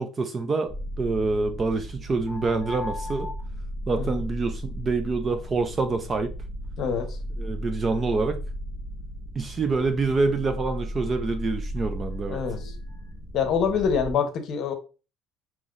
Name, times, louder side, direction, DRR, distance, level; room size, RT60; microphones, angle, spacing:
voice 1, 0.0-3.3 3.9-6.3 7.4-8.4 9.4-12.4, right 3 dB, 20° right, 0.3 m, -26 dB
sound 1, 0.7-14.1, equal, 5° right, 1.5 m, -35 dB
voice 2, 6.8-7.2 12.3-12.7 13.3-14.7, left 6 dB, 40° left, 0.8 m, -26 dB
5.6 x 3.0 x 2.4 m
cardioid pair, 175°, 0 cm